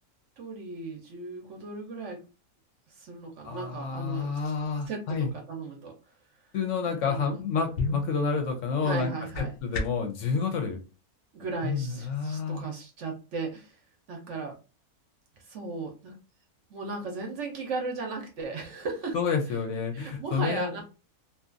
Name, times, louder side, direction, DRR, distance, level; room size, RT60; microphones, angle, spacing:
voice 1, 0.4-2.2 3.0-4.5 4.9-5.9 6.9-7.4 8.8-9.5 11.3-13.8 14.1-14.6 15.5-16.1 16.7-19.2 19.9-20.8, right 3 dB, 60° right, 2 dB, 0.9 m, -36 dB
voice 2, 3.4-5.3 6.5-9.1 9.4-10.8 11.6-12.7 19.1-20.8, left 5 dB, 65° left, 4 dB, 0.8 m, -29 dB
sound 1, 7.7-10.2, left 3 dB, 85° left, 0.5 m, -35 dB
2.7 x 2.3 x 2.4 m, 0.32 s
omnidirectional pair, 1.6 m